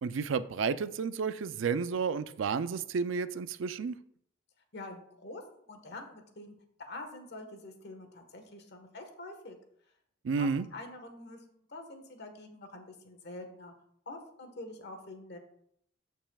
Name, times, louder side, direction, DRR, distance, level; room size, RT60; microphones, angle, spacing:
voice 1, 0.0-4.0 10.2-10.7, right 5 dB, 75° right, 0.4 m, -31 dB
voice 2, 4.7-9.6 10.3-11.4 11.7-13.7 14.0-15.4, left 2 dB, 60° left, 1.3 m, -46 dB
14.0 x 5.4 x 2.3 m
head